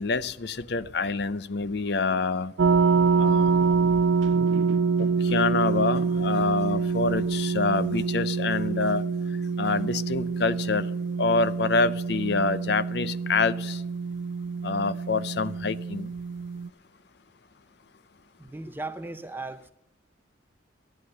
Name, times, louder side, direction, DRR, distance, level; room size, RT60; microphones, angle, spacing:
voice 1, 0.0-2.5 3.2-3.6 5.3-9.0 9.6-10.9 11.2-13.8 14.6-16.1, left 4 dB, 60° left, 16 dB, 0.6 m, -26 dB
sound 1, 2.6-16.7, right 5 dB, 80° right, 0.4 m, -26 dB
voice 2, 18.4-19.7, right 2 dB, 10° right, 10 dB, 0.6 m, -37 dB
13.0 x 11.5 x 6.5 m, 0.84 s
head